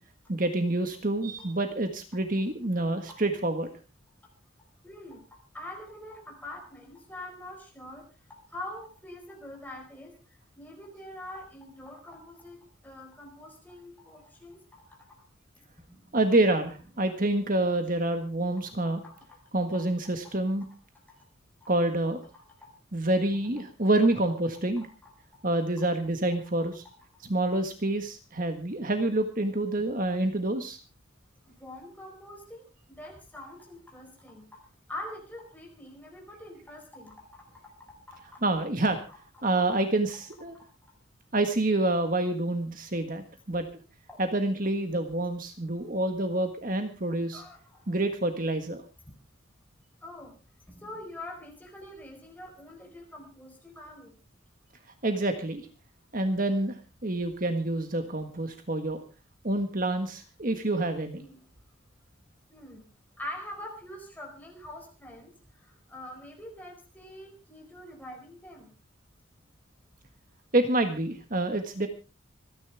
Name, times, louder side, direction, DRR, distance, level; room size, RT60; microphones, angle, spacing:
voice 1, 0.3-3.7 16.1-19.0 19.5-20.7 21.7-22.2 22.9-24.8 25.4-26.8 27.3-30.8 38.4-39.0 39.4-40.5 41.3-43.7 44.2-47.4 47.9-48.8 55.0-55.7 56.1-59.0 59.4-61.2 70.5-71.9, right 2 dB, 40° right, 7 dB, 1.6 m, -27 dB
voice 2, 4.8-10.2 10.6-15.0 15.8-16.1 18.8-19.4 19.7-19.9 20.2-20.3 21.6-21.7 22.3-22.7 24.8-25.4 25.8-25.9 29.8-30.0 31.6-34.6 34.9-38.4 39.1-39.2 40.5-40.9 44.1-44.2 47.3-48.0 50.0-50.3 50.7-54.2 61.2-61.5 62.5-62.8 63.2-68.7, left 1 dB, 10° left, 1 dB, 4.6 m, -45 dB
26.5 x 10.5 x 3.5 m, 0.32 s
head